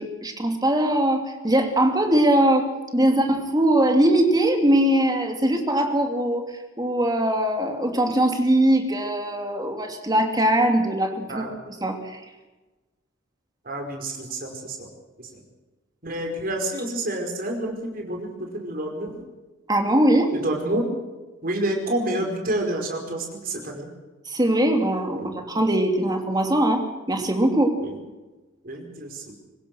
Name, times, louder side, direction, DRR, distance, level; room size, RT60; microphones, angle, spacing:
voice 1, 0.0-2.7 2.9-6.4 6.8-12.2 19.7-20.3 24.3-26.8 27.1-27.7, right 1 dB, 20° right, 4 dB, 2.8 m, -21 dB
voice 2, 13.6-14.9 15.2-15.4 16.0-19.2 20.3-21.0 21.4-23.9 25.1-25.4 27.8-28.0 28.6-29.3, right 1 dB, 45° right, 2 dB, 5.2 m, -29 dB
24.0 x 20.0 x 6.3 m, 1.2 s
head